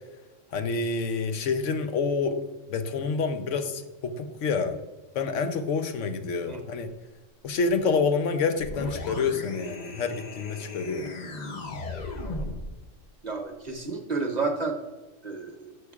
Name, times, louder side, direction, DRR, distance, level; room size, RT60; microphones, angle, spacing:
voice 1, 0.5-2.4 2.7-4.8 5.1-6.9 7.4-11.1, left 4 dB, 75° left, 8 dB, 1.0 m, -28 dB
sound 1, 8.6-12.8, left 2 dB, 40° left, 0.7 m, -37 dB
voice 2, 13.2-14.8 15.2-15.8, right 3 dB, 40° right, 3 dB, 0.8 m, -31 dB
11.0 x 6.3 x 2.4 m, 1.2 s
omnidirectional pair, 1.3 m